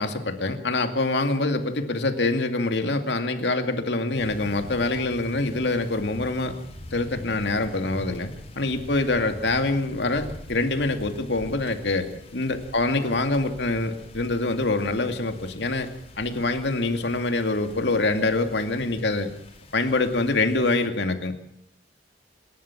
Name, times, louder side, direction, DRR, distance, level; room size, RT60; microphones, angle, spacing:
voice 1, 0.0-6.5 6.9-15.9 16.2-19.3 19.7-21.4, left 2 dB, 75° left, 6 dB, 2.5 m, -25 dB
sound 1, 4.1-20.9, left 1 dB, 35° left, 5.0 m, -44 dB
28.0 x 13.0 x 7.4 m, 0.73 s
head